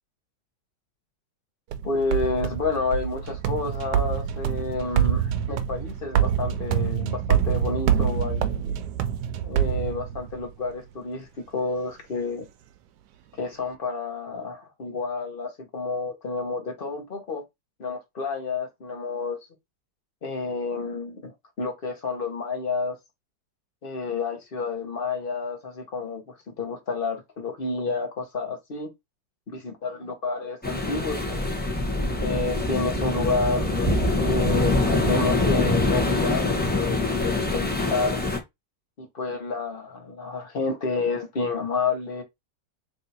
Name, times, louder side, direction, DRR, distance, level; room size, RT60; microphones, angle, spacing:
sound 1, 1.7-10.5, right 9 dB, 75° right, 1.0 m, -26 dB
voice 1, 1.8-8.7 9.4-12.5 13.4-17.4 17.8-19.4 20.2-21.3 21.6-22.9 23.8-28.9 29.6-31.5 32.2-38.2 39.0-42.2, left 4 dB, 35° left, 1.0 m, -30 dB
sound 2, 30.6-38.4, left 2 dB, 10° left, 0.6 m, -24 dB
3.4 x 2.8 x 4.0 m
omnidirectional pair, 2.0 m